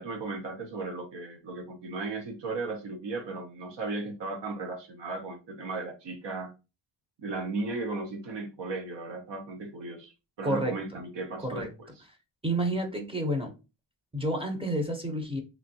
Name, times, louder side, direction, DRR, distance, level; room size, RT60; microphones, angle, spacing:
voice 1, 0.0-6.5 7.2-11.9, right 3 dB, 75° right, 0.7 m, -36 dB
voice 2, 10.4-10.8 11.4-11.7 12.4-13.5 14.1-15.4, right 1 dB, 15° right, 0.6 m, -29 dB
3.1 x 2.5 x 2.7 m
wide cardioid pair, 110°, 43 cm